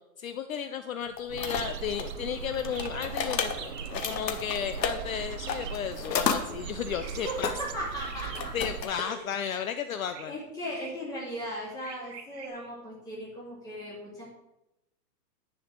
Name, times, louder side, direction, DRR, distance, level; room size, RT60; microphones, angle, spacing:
voice 1, 0.2-7.5 8.5-10.3, left 8 dB, 55° left, 9 dB, 0.6 m, -34 dB
sound 1, 1.2-2.1 2.5-4.9 5.5-6.4 7.4-7.5 8.0-9.0, left 7 dB, 80° left, 1.6 m, -31 dB
sound 2, 1.3-8.9, right 7 dB, 60° right, 0.8 m, -39 dB
sound 3, 1.4-1.8 2.1-2.2 2.4-2.5 2.7-3.2 3.5-4.2 5.4-5.9 6.9-7.4 8.0-8.7 9.3-9.5 10.1-10.3 10.7-11.1 11.8-12.5, right 7 dB, 75° right, 1.7 m, -45 dB
voice 2, 7.0-8.5 8.8-9.2 10.3-14.2, equal, 5° left, -7 dB, 2.7 m, -37 dB
11.0 x 4.7 x 7.5 m, 0.92 s
hypercardioid pair, 175°, 49 cm